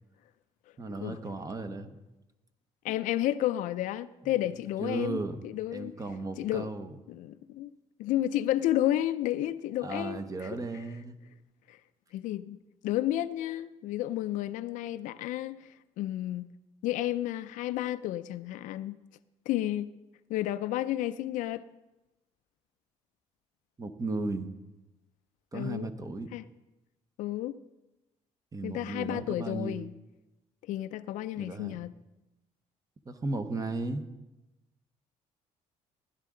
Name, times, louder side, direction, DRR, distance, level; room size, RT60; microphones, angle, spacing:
voice 1, 0.8-1.9 4.2-4.4 4.8-5.4 5.7-6.9 9.8-11.2 23.8-24.5 25.5-26.3 28.5-29.9 31.4-31.8 33.1-34.0, right 3 dB, 25° right, 1.0 m, -35 dB
voice 2, 2.8-5.9 6.4-6.7 7.1-7.7 8.0-10.5 11.7-11.8 12.1-12.6 12.8-15.7 16.0-16.5 16.8-19.0 19.5-19.9 20.3-21.6 25.5-25.9 26.3-26.4 27.2-27.6 28.6-29.9 30.7-31.9, left 13 dB, 80° left, 0.4 m, -31 dB
15.5 x 11.0 x 3.8 m
cardioid pair, 100°, 13 cm